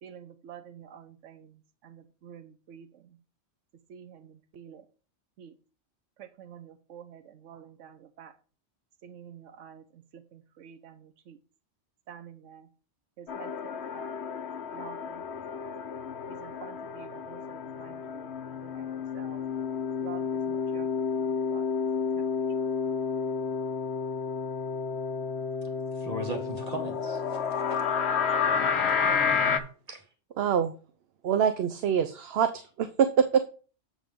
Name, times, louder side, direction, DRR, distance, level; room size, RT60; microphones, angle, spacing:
voice 1, 0.0-3.2 3.9-4.9 5.4-5.6 6.2-8.4 9.0-11.4 12.1-12.7 13.2-14.1 14.7-15.3 16.3-19.4 20.0-21.7 22.1-22.7, right 8 dB, 90° right, 1.1 m, -49 dB
sound 1, 13.3-29.6, left 6 dB, 70° left, 1.1 m, -30 dB
voice 2, 26.0-27.9 29.9-30.0, right 1 dB, 35° right, 1.8 m, -38 dB
voice 3, 30.4-30.7 31.2-33.4, right 8 dB, 65° right, 0.8 m, -25 dB
7.3 x 7.2 x 3.6 m
omnidirectional pair, 1.2 m